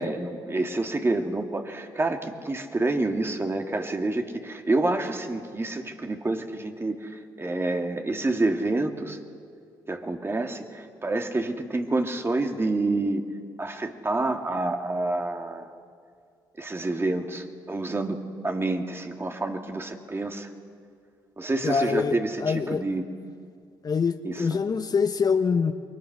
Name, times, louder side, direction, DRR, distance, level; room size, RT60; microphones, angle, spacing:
voice 1, 0.0-9.2 9.9-13.2 13.6-15.7 16.6-20.5 21.4-23.0 24.2-24.6, right 2 dB, 25° right, 4 dB, 2.7 m, -28 dB
voice 2, 21.6-22.8 23.8-25.7, left 5 dB, 45° left, 9 dB, 1.2 m, -25 dB
28.5 x 23.0 x 6.3 m, 2.3 s
hypercardioid pair, 50°, 10 cm